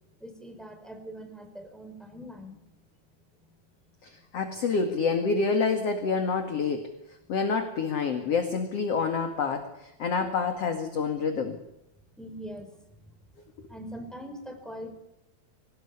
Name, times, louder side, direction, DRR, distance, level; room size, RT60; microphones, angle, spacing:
voice 1, 0.2-2.6 3.5-3.6 12.2-13.0 13.7-15.0, equal, ahead, 6 dB, 4.6 m, -42 dB
voice 2, 4.0-6.9 7.3-11.6, left 5 dB, 45° left, 5 dB, 2.7 m, -27 dB
26.0 x 18.5 x 9.9 m, 0.84 s
omnidirectional pair, 4.4 m